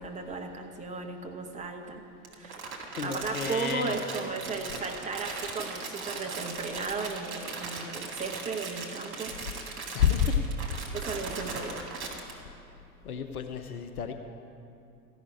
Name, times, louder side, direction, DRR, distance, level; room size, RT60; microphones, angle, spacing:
voice 1, 0.0-2.0 2.3-2.6 3.0-9.3 10.9-11.8, right 4 dB, 15° right, 3 dB, 1.0 m, -35 dB
Crumpling crinkling, 2.2-12.3, right 4 dB, 45° right, 2.2 m, -39 dB
voice 2, 2.9-4.0 9.9-10.4 11.5-11.7 13.0-14.1, left 7 dB, 70° left, 6 dB, 0.9 m, -29 dB
14.0 x 6.1 x 8.6 m, 2.5 s
figure-of-eight pair, 85°, 46 cm